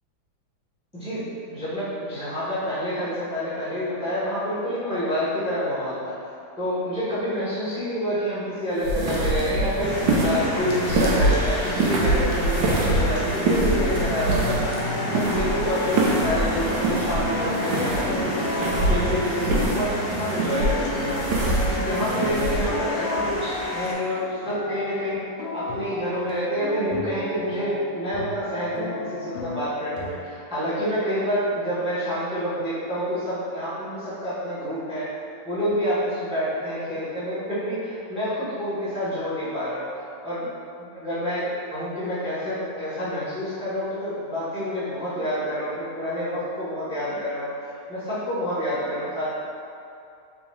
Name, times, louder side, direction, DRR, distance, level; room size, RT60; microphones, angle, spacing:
voice 1, 0.9-6.2 6.6-18.3 18.6-25.2 25.5-35.1 35.4-39.9 40.2-40.6 40.9-49.2, equal, 5° right, -13 dB, 1.1 m, -28 dB
sound 1, 8.8-22.7, right 2 dB, 80° right, 1.3 m, -24 dB
sound 2, 9.8-23.9, left 2 dB, 65° left, 0.9 m, -33 dB
sound 3, 14.3-30.2, left 2 dB, 85° left, 1.4 m, -33 dB
3.4 x 3.1 x 3.3 m, 2.6 s
omnidirectional pair, 2.1 m